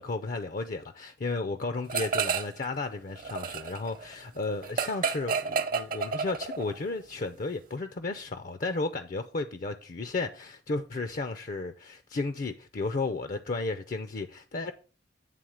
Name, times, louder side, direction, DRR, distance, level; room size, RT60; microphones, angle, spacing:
voice 1, 0.0-14.7, left 3 dB, 50° left, 0.5 m, -33 dB
sound 1, 1.9-2.6 2.9-6.8, right 5 dB, 50° right, 0.8 m, -31 dB
9.2 x 3.6 x 6.3 m
head